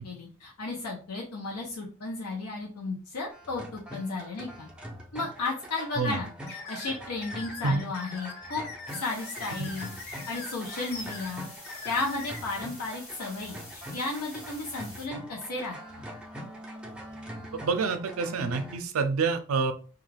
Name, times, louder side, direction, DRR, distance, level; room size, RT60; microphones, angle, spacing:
voice 1, 0.0-4.7 5.1-8.7 8.9-11.5 11.8-15.8, left 3 dB, 90° left, -2 dB, 0.7 m, -34 dB
sound 1, 3.3-18.8, equal, 5° right, 0.4 m, -43 dB
sound 2, 6.5-12.4, left 3 dB, 45° left, 0.6 m, -42 dB
sound 3, 8.9-15.1, left 1 dB, 60° left, 1.2 m, -47 dB
voice 2, 17.6-19.7, right 4 dB, 65° right, 8 dB, 0.4 m, -27 dB
2.3 x 2.3 x 3.2 m, 0.36 s
head